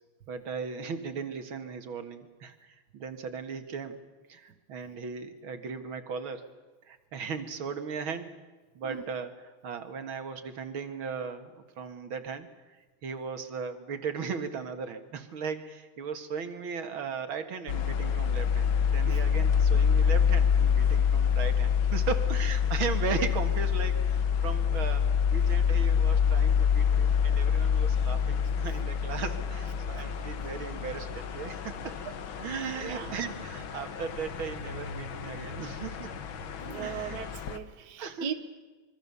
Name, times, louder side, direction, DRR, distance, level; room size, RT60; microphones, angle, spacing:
voice 1, 0.3-4.0 4.3-6.5 6.8-8.4 8.7-36.1 36.6-37.2 38.0-38.3, right 6 dB, 75° right, 8 dB, 2.5 m, -37 dB
sound 1, 17.7-37.6, left 7 dB, 70° left, 2.0 m, -27 dB
voice 2, 28.5-28.8 29.6-30.1 32.8-33.2 36.6-38.3, right 8 dB, 55° right, 7 dB, 1.8 m, -39 dB
26.0 x 23.5 x 7.0 m, 1.3 s
omnidirectional pair, 2.3 m